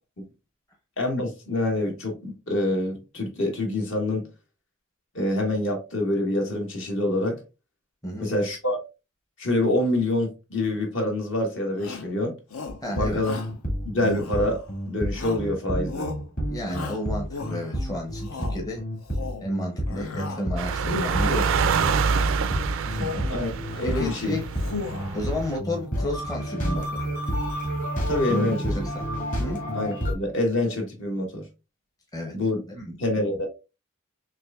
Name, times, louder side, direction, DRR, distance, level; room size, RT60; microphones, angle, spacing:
voice 1, 1.0-4.3 5.1-7.4 8.2-8.8 9.4-12.4 12.9-13.4 13.8-14.6 14.9-16.1 23.3-24.3 28.1-28.7 29.7-31.5 32.3-32.6 33.0-33.5, left 1 dB, 60° left, 1.5 m, -26 dB
Shout, 11.8-12.1 12.5-12.9 13.2-13.6 14.0-14.7 15.1-15.5 15.9-16.2 16.7-17.8 18.2-18.6 19.0-19.5 19.9-20.5 20.8-21.5 22.0-22.4 22.8-23.3 23.6-24.2 24.5-25.2, left 4 dB, 80° left, 0.8 m, -35 dB
voice 2, 12.8-13.2 16.5-18.8 19.4-21.7 23.0-23.2 23.8-24.5 25.1-27.0 28.3-29.0 29.4-29.7 32.1-32.4 32.7-33.0, left 1 dB, 15° left, 0.7 m, -32 dB
sound 1, 13.0-30.1, equal, 40° left, 1.7 m, -30 dB
sound 2, 20.6-25.6, right 5 dB, 65° right, 0.3 m, -27 dB
5.9 x 2.6 x 2.3 m
head